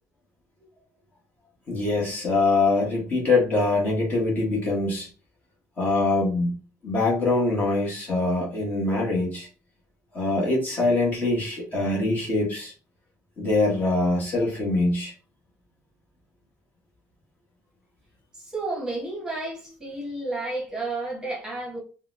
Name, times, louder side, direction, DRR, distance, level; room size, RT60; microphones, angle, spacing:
voice 1, 1.7-5.1 5.8-6.5 6.8-9.5 10.1-12.7 13.4-15.1, left 2 dB, 30° left, 1.0 m, -23 dB
voice 2, 18.3-21.8, right 2 dB, 10° right, 1.0 m, -31 dB
3.7 x 2.0 x 2.5 m
cardioid pair, 165°, 6 cm